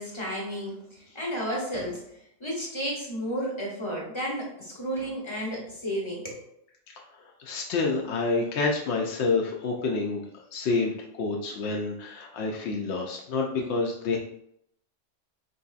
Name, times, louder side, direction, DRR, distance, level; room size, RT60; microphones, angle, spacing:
voice 1, 0.0-6.4, equal, 25° left, -3 dB, 0.8 m, -32 dB
voice 2, 7.4-10.2 10.5-14.2, left 3 dB, 75° left, -1 dB, 0.8 m, -28 dB
4.4 x 2.7 x 2.3 m, 0.75 s
omnidirectional pair, 1.2 m